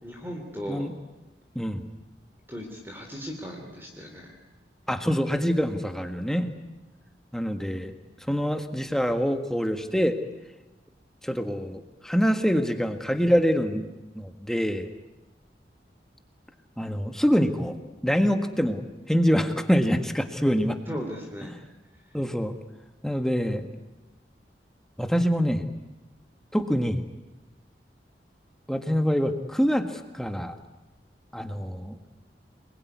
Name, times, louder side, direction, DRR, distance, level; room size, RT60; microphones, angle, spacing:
voice 1, 0.0-0.9 2.5-4.3 20.9-21.5, equal, 15° right, 1 dB, 3.3 m, -37 dB
voice 2, 1.5-1.9 4.9-6.5 7.3-7.9 8.3-10.2 11.2-14.9 16.8-17.8 18.0-20.8 22.1-22.5 23.0-23.6 25.0-25.7 26.5-27.0 28.7-29.9 30.1-30.6 31.3-32.0, equal, 5° left, 7 dB, 1.6 m, -25 dB
28.5 x 21.0 x 9.6 m, 1.1 s
head